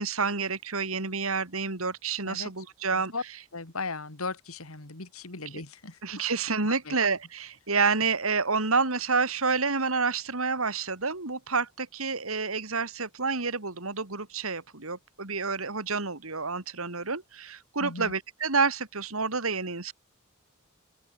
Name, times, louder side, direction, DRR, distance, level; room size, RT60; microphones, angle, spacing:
voice 1, 0.0-3.1 6.0-19.9, right 4 dB, 80° right, 3.2 m, -29 dB
voice 2, 2.9-3.2 3.5-6.3 6.6-7.0 17.8-18.1, left 3 dB, 85° left, 2.9 m, -37 dB
open air
head